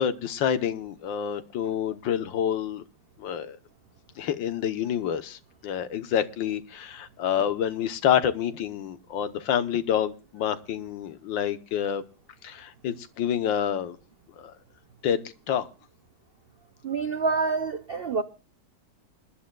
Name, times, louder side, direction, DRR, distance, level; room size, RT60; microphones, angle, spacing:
voice 1, 0.0-2.8 3.2-3.6 4.2-12.0 12.4-14.0 14.4-14.5 15.0-15.7, left 9 dB, 85° left, 1.7 m, -28 dB
voice 2, 16.8-18.2, right 4 dB, 65° right, 0.5 m, -27 dB
27.5 x 11.5 x 2.3 m
omnidirectional pair, 2.0 m